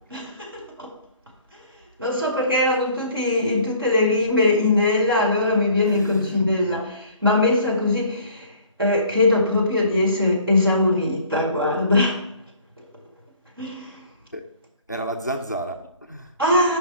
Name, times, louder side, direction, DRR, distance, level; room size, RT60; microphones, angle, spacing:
voice 1, 0.1-0.9 2.0-12.2 13.6-14.0 16.4-16.8, left 2 dB, 45° right, -2 dB, 1.7 m, -21 dB
voice 2, 5.8-6.4 6.7-6.8 14.3-14.4 14.9-16.3, right 1 dB, 35° left, 5 dB, 0.4 m, -31 dB
5.4 x 3.6 x 5.7 m, 0.82 s
figure-of-eight pair, 175°, 17 cm